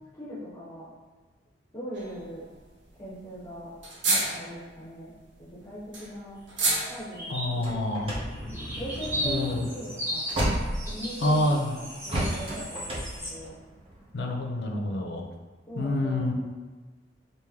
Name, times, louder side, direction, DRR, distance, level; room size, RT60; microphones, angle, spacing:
voice 1, 0.1-0.9 1.7-2.5 3.0-3.7 4.1-5.1 5.6-6.4 6.9-7.7 8.0-8.2 8.8-10.3 10.9-13.6 15.7-16.3, equal, 15° left, -11 dB, 0.8 m, -40 dB
sound 1, 1.9-2.3 2.6-2.7 2.9-3.0 3.2-3.3 3.8-4.7 5.3-7.5, right 2 dB, 70° right, 0.7 m, -29 dB
sound 2, 6.9-7.5 7.9-13.3, equal, 15° right, 1.1 m, -36 dB
voice 2, 7.3-8.2 9.2-9.7 11.2-11.7 14.1-15.2 15.8-16.3, left 1 dB, 65° left, 1 dB, 0.5 m, -27 dB
sound 3, 7.6-11.5 12.1-14.1, right 1 dB, 30° right, 0.7 m, -32 dB
3.2 x 2.6 x 3.6 m, 1.3 s
head